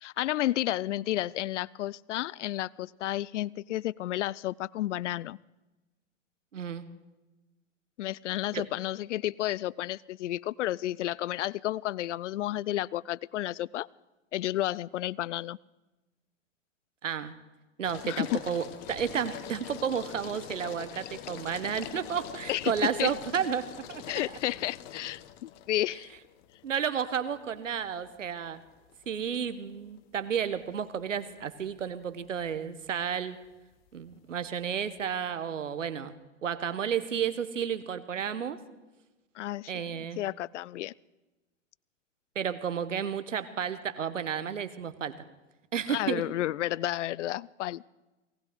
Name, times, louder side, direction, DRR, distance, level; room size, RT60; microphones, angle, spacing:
voice 1, 0.0-5.4 8.0-13.9 14.3-15.6 18.0-18.4 22.5-22.7 23.0-23.1 24.1-26.1 39.4-40.9 45.9-47.9, left 14 dB, 70° left, 24 dB, 0.5 m, -32 dB
voice 2, 6.5-6.8 8.5-8.7 17.0-17.3 17.8-24.2 26.6-28.6 29.1-33.4 33.9-36.1 36.4-38.6 39.7-40.2 42.3-45.2 45.7-46.2, right 7 dB, 85° right, 13 dB, 1.2 m, -32 dB
sound 1, 17.8-35.3, left 11 dB, 55° left, 1.4 m, -46 dB
19.0 x 18.0 x 3.9 m, 1.1 s
hypercardioid pair, 110°, 37 cm